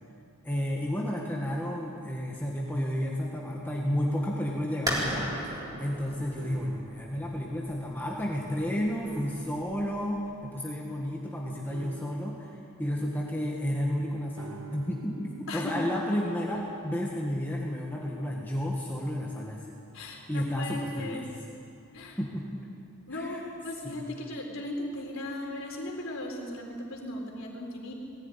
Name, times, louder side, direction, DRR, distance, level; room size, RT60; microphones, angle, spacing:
voice 1, 0.4-5.3 5.8-12.5 12.8-19.8 20.3-21.2 22.2-22.5 23.1-23.4 23.8-24.0, equal, 10° left, -3 dB, 1.7 m, -32 dB
sound 1, 4.9-10.3, equal, 15° right, 3.8 m, -36 dB
sound 2, 6.4-7.2 9.0-9.8 11.7-12.5 14.4-17.0, right 3 dB, 60° right, 1.2 m, -46 dB
voice 2, 15.5-15.8 19.9-21.2 21.9-22.2 23.1-27.9, left 1 dB, 60° left, 1 dB, 4.0 m, -37 dB
20.0 x 15.5 x 9.9 m, 2.5 s
head